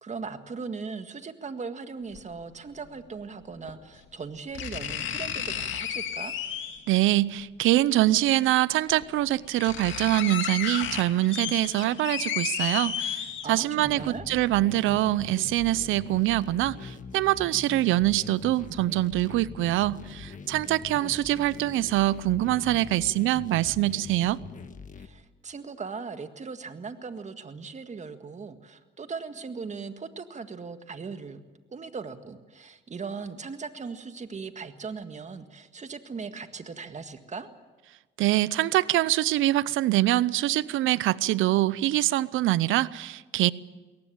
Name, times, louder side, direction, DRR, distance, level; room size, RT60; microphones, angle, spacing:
voice 1, 0.0-6.3 13.4-14.3 25.0-31.4 31.7-37.5, right 5 dB, 35° right, 9 dB, 1.8 m, -39 dB
sound 1, 2.1-2.2 3.7-3.8 4.5-6.9 8.3-8.4 9.0-9.1 9.3-13.8 14.2-14.3, left 8 dB, 75° left, 2.4 m, -32 dB
voice 2, 6.9-24.4 38.2-43.5, right 15 dB, 85° right, 19 dB, 0.7 m, -24 dB
sound 2, 13.8-25.1, left 6 dB, 40° left, 1.5 m, -43 dB
22.0 x 18.5 x 8.7 m, 1.3 s
cardioid pair, 90°, 20 cm